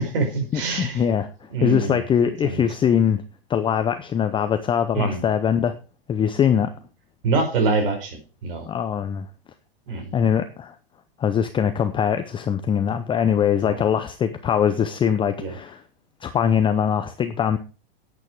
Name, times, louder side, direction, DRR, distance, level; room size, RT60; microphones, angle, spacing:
voice 1, 0.0-1.0 1.5-2.0 2.4-2.6 4.9-5.2 7.2-8.7 9.9-10.1 13.6-13.8 15.4-15.6, right 3 dB, 70° right, 5 dB, 5.2 m, -25 dB
voice 2, 0.5-3.2 3.5-5.8 6.1-6.7 8.7-9.3 10.1-10.8 11.2-15.8 16.2-17.6, left 8 dB, 15° left, 9 dB, 0.7 m, -22 dB
10.5 x 8.5 x 4.7 m, 0.34 s
hypercardioid pair, 130°, 29 cm